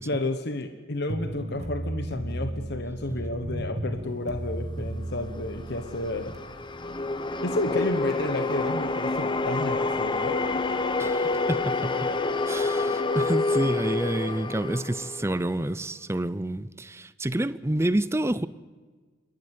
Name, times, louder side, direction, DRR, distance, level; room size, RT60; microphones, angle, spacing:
voice 1, 0.0-6.4 7.4-10.8, left 2 dB, 55° left, 1.2 m, -31 dB
sound 1, 1.1-6.4, right 1 dB, 35° right, 1.8 m, -34 dB
sound 2, 5.4-15.7, left 3 dB, 25° left, 0.9 m, -28 dB
voice 2, 11.0-12.1 12.5-18.5, right 1 dB, 15° right, 0.5 m, -28 dB
28.5 x 13.0 x 8.4 m
head